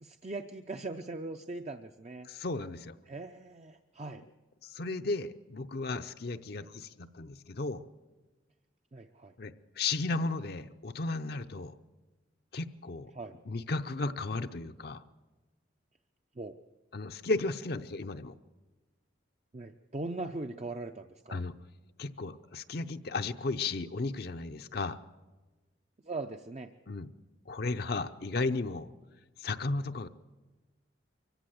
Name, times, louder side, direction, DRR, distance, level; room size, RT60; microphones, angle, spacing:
voice 1, 0.0-2.3 3.1-4.2 6.6-6.7 8.9-9.3 13.1-13.3 16.4-16.6 19.5-21.4 26.0-26.7, right 2 dB, 35° right, 6 dB, 0.5 m, -40 dB
voice 2, 2.2-3.0 4.6-7.8 9.4-11.7 12.5-13.1 13.5-15.0 16.9-18.3 21.3-21.5 22.0-25.0 26.9-27.1 27.5-28.9 29.4-30.1, left 3 dB, 50° left, 8 dB, 0.6 m, -34 dB
24.0 x 15.0 x 7.8 m, 1.2 s
head